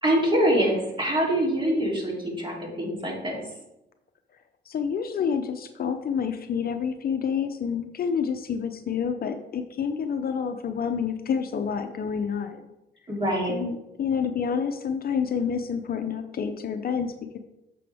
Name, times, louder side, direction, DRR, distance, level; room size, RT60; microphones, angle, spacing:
voice 1, 0.0-3.4 13.1-13.5, right 1 dB, 25° right, -3 dB, 3.2 m, -24 dB
voice 2, 4.7-12.7 13.5-17.4, left 6 dB, 50° left, 7 dB, 0.7 m, -28 dB
8.4 x 6.9 x 3.5 m, 0.92 s
cardioid pair, 90°, 20 cm